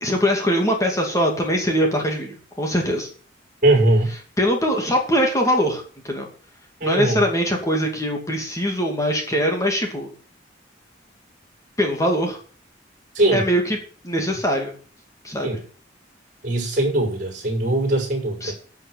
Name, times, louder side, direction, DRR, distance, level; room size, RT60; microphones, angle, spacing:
voice 1, 0.0-3.1 4.4-6.3 6.8-10.1 11.8-12.4 13.3-13.8 14.0-14.7 15.2-15.6 18.4-18.5, equal, 15° left, 2.5 m, -22 dB
voice 2, 3.6-4.1 6.8-7.2 13.1-13.5 15.4-15.6 16.4-18.5, right 2 dB, 45° right, 5.8 m, -20 dB
11.5 x 6.5 x 8.0 m
head